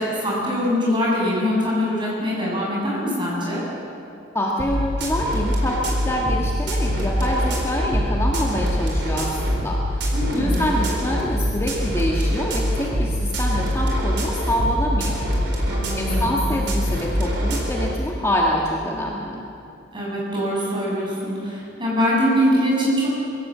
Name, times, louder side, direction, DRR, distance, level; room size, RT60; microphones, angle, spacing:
voice 1, 0.0-3.6 10.1-10.7 15.6-16.4 19.9-23.1, equal, 25° right, -4 dB, 7.3 m, -23 dB
voice 2, 4.3-15.2 15.6-19.4, equal, 15° left, -2 dB, 1.7 m, -26 dB
sound 1, 4.6-17.9, equal, 65° right, 4.3 m, -24 dB
23.0 x 16.0 x 7.6 m, 2.6 s
head